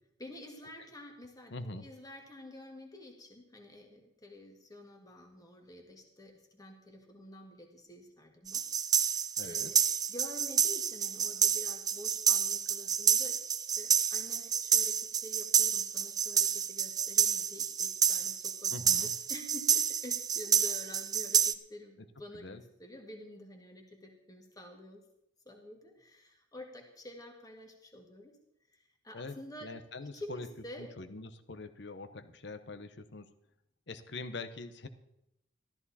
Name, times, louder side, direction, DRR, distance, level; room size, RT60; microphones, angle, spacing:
voice 1, 0.2-9.8 10.1-18.7 19.0-25.0 25.5-28.4 28.7-29.7 30.0-30.9, left 1 dB, 20° left, 3 dB, 2.0 m, -49 dB
voice 2, 1.5-1.9 9.4-9.7 18.7-19.1 22.0-22.1 22.3-22.6 29.1-30.5 30.8-33.3 33.9-34.9, left 2 dB, 60° left, 11 dB, 1.0 m, -44 dB
sound 1, 8.5-21.5, right 8 dB, 20° right, 0.4 m, -29 dB
13.5 x 13.5 x 4.2 m, 0.84 s
head